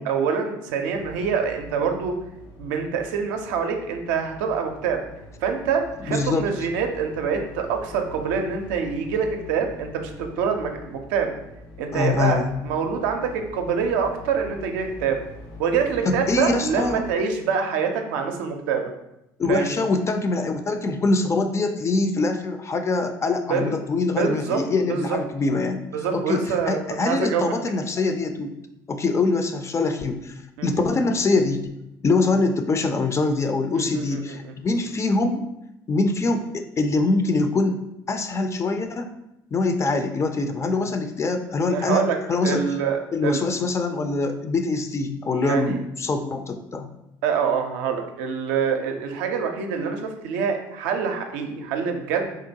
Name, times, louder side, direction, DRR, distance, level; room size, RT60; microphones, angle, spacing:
voice 1, 0.0-2.2 2.6-5.0 5.4-11.3 11.8-15.2 15.6-18.8 19.5-19.7 23.5-23.7 24.2-24.6 24.9-25.2 25.9-27.4 30.6-30.7 33.7-34.5 41.7-42.2 42.4-43.4 45.3-45.8 47.2-52.4, right 6 dB, 80° right, 4 dB, 0.4 m, -25 dB
sound 1, 0.9-17.1, left 2 dB, 75° left, 1.0 m, -43 dB
voice 2, 6.1-6.5 11.9-12.5 16.1-17.1 19.4-25.8 26.1-28.5 28.9-30.3 30.6-31.8 32.0-35.5 35.9-37.8 38.1-39.1 39.5-42.6 43.1-46.9, left 3 dB, 30° left, 7 dB, 0.4 m, -24 dB
3.7 x 2.1 x 2.7 m, 0.85 s
hypercardioid pair, 65°, 10 cm